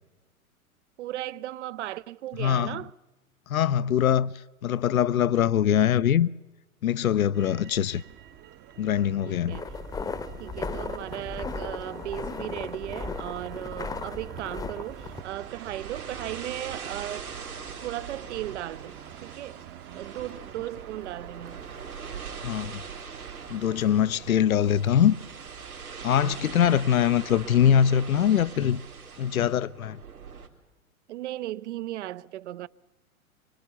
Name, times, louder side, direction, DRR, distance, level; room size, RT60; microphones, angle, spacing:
voice 1, 1.0-2.9 9.2-9.7 10.4-17.3 17.8-19.6 19.9-21.6 26.1-26.4 31.1-32.7, right 14 dB, 55° right, 0.7 m, -36 dB
voice 2, 2.4-2.8 3.5-4.3 4.6-6.3 6.8-8.0 8.8-9.6 22.4-22.8 23.5-25.2 26.0-28.8 29.2-30.0, left 9 dB, 70° left, 0.7 m, -23 dB
Motor vehicle (road), 7.3-25.8, right 11 dB, 25° right, 0.9 m, -47 dB
sound 1, 9.5-15.2, left 4 dB, 10° left, 0.9 m, -36 dB
sound 2, 14.9-30.5, right 6 dB, 80° right, 3.4 m, -42 dB
25.0 x 23.5 x 7.0 m
figure-of-eight pair, 105°, 43 cm